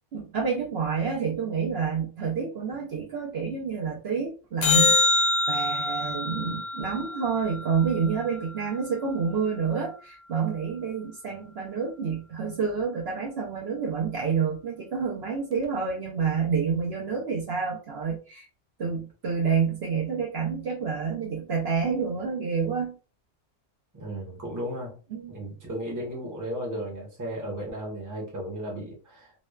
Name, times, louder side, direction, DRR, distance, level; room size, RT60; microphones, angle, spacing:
voice 1, 0.1-18.5 18.8-23.0 25.1-25.3, right 6 dB, 60° right, 0.8 m, -28 dB
sound 1, 4.6-9.1 15.6-15.7, left 3 dB, 80° left, 0.3 m, -26 dB
voice 2, 23.9-25.0 25.3-29.3, right 1 dB, 15° right, 0.8 m, -35 dB
3.0 x 2.1 x 2.2 m
omnidirectional pair, 1.3 m